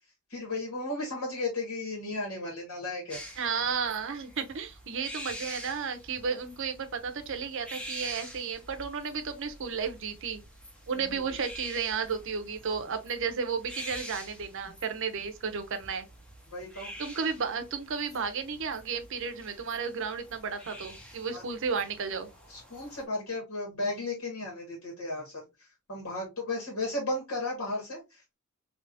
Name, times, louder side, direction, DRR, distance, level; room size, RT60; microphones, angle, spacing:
voice 1, 0.3-3.2 10.9-11.3 16.5-16.9 21.3-21.4 22.5-28.3, left 2 dB, 70° left, 1.8 m, -35 dB
sound 1, 3.1-23.0, equal, 5° left, 0.6 m, -47 dB
voice 2, 3.4-10.4 10.9-16.1 17.0-22.3, right 5 dB, 60° right, 0.6 m, -33 dB
3.4 x 2.8 x 2.6 m
head